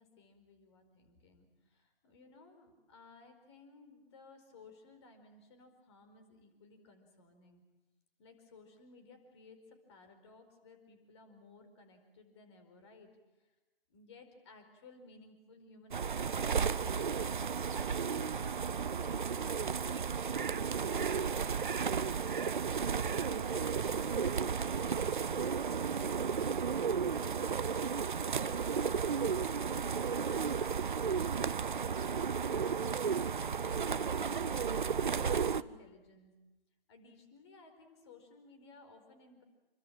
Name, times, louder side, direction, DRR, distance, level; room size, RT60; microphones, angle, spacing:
voice 1, 0.0-7.6 8.2-13.1 13.4-13.5 13.9-17.5 17.8-22.3 22.8-32.7 33.1-36.3 36.9-39.4, left 3 dB, 30° left, 7 dB, 4.6 m, -58 dB
sound 1, 15.9-35.6, right 6 dB, 55° right, 0.9 m, -33 dB
27.5 x 24.0 x 7.6 m, 1.1 s
figure-of-eight pair, 145°, 30 cm